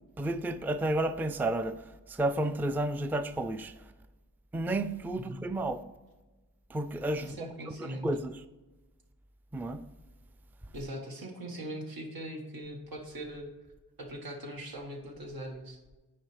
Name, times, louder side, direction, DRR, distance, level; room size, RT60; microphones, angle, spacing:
voice 1, 0.0-3.7 4.5-5.8 6.7-7.4 7.7-8.4 9.5-9.8, right 1 dB, 5° right, 0.3 m, -32 dB
voice 2, 7.2-8.1 10.7-13.5 14.0-15.8, right 1 dB, 85° right, 1.5 m, -40 dB
9.1 x 4.9 x 3.2 m
wide cardioid pair, 80°, 35 cm